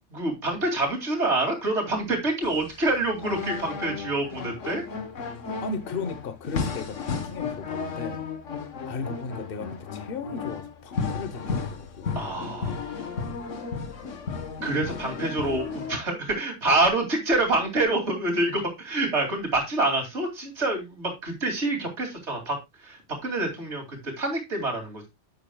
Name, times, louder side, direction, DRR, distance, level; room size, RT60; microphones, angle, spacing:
voice 1, 0.0-4.8 12.1-13.1 14.6-25.1, right 2 dB, 65° right, 2.9 m, -27 dB
sound 1, 2.4-16.0, left 5 dB, 85° left, 1.5 m, -34 dB
voice 2, 5.6-8.3 8.9-12.2, left 4 dB, 50° left, 1.2 m, -36 dB
10.0 x 8.0 x 2.3 m
omnidirectional pair, 1.2 m